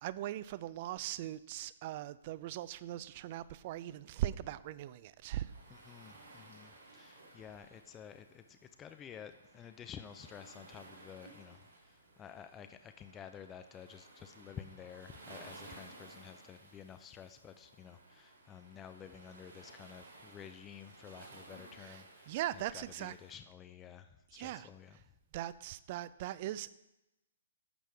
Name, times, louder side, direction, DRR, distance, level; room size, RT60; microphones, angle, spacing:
voice 1, 0.0-5.5 21.8-22.0 22.3-23.1 24.3-24.7 25.3-26.7, right 13 dB, 40° right, 17 dB, 0.4 m, -40 dB
Waves surf, 5.4-23.4, right 2 dB, 90° right, 2.9 m, -57 dB
voice 2, 5.7-25.0, left 8 dB, 20° left, 9 dB, 0.5 m, -51 dB
12.0 x 7.4 x 3.5 m, 0.91 s
figure-of-eight pair, 130°, 0 cm